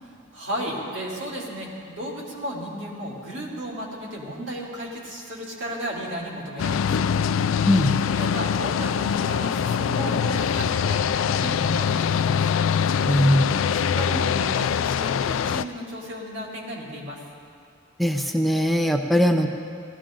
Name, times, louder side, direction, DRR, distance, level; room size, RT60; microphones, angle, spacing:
voice 1, 0.0-7.1 8.1-12.4 13.4-17.2, right 1 dB, 65° right, -4 dB, 3.0 m, -34 dB
sound 1, 6.6-15.6, left 7 dB, 85° left, 0.3 m, -23 dB
voice 2, 13.1-13.4 18.0-19.5, equal, ahead, 3 dB, 0.6 m, -20 dB
19.0 x 15.0 x 3.8 m, 2.4 s
head